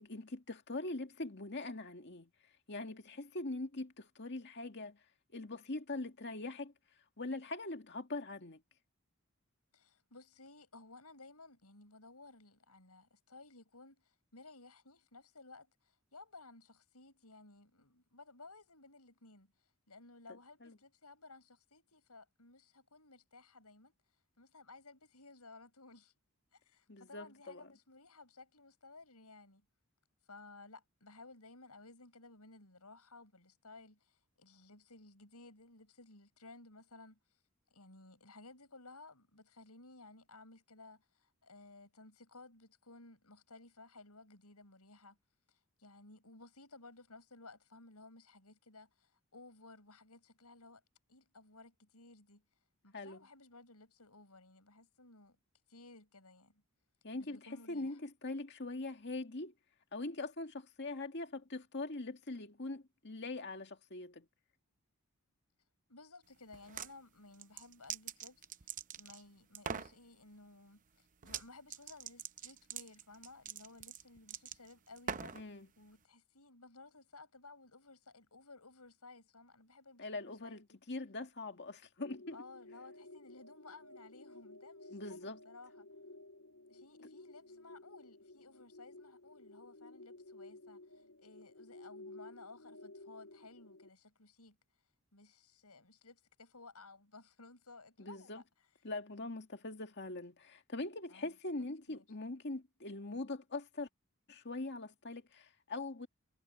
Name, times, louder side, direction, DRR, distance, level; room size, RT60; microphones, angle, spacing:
voice 1, 0.0-2.3 2.7-5.0 5.3-6.7 7.2-8.6 20.6-20.8 26.9-27.7 52.9-53.3 57.0-57.4 57.7-59.5 59.9-64.3 75.3-75.7 80.0-82.4 84.9-85.4 98.0-98.4 98.8-103.9 104.3-106.1, left 2 dB, 50° left, 2.1 m, -42 dB
voice 2, 9.7-23.9 24.4-26.1 26.5-29.7 30.3-37.2 37.7-45.2 45.5-50.8 51.1-52.4 52.8-55.4 55.7-56.6 57.2-58.0 65.9-75.5 75.8-80.6 82.2-85.9 86.7-94.6 95.1-98.7 101.1-102.0, left 3 dB, 90° left, 7.2 m, -57 dB
sound 1, 66.5-66.9 67.3-69.2 69.5-69.9 71.2-71.4 71.7-75.4, right 7 dB, 35° right, 0.7 m, -43 dB
sound 2, 82.0-93.9, left 2 dB, 70° left, 4.4 m, -54 dB
head